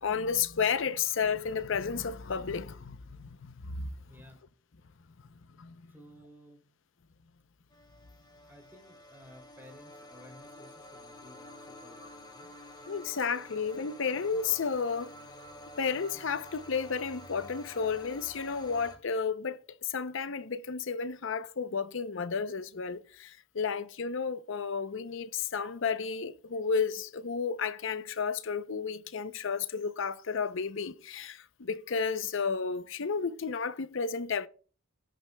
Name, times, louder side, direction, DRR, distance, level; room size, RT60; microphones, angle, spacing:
voice 1, 0.0-3.9 5.6-5.7 12.9-15.1 15.8-34.5, left 5 dB, 65° left, 0.6 m, -32 dB
voice 2, 4.1-4.4 5.9-6.6 8.4-12.9, equal, 10° right, 2.8 m, -55 dB
sound 1, 7.7-19.0, left 1 dB, 20° left, 2.5 m, -50 dB
18.5 x 9.0 x 2.2 m
head